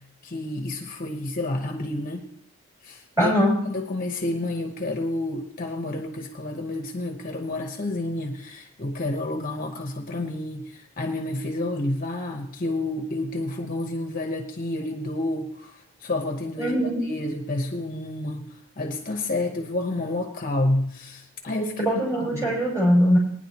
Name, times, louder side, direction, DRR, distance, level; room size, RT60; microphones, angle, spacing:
voice 1, 0.2-2.3 2.8-3.3 3.7-18.5 18.8-21.9 22.3-22.6, left 2 dB, 40° left, 3 dB, 1.0 m, -29 dB
voice 2, 3.2-3.6 16.6-17.0 21.9-23.2, equal, 15° right, -5 dB, 5.9 m, -21 dB
20.0 x 10.0 x 3.0 m, 0.68 s
head